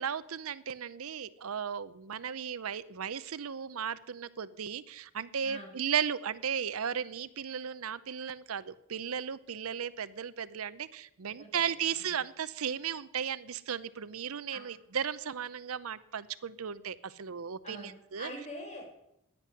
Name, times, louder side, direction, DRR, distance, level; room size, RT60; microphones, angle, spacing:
voice 1, 0.0-18.3, right 7 dB, 80° right, 16 dB, 0.6 m, -35 dB
voice 2, 11.2-12.2 14.5-14.6 17.6-18.8, equal, 30° left, 2 dB, 4.7 m, -45 dB
11.5 x 10.0 x 9.8 m, 0.81 s
head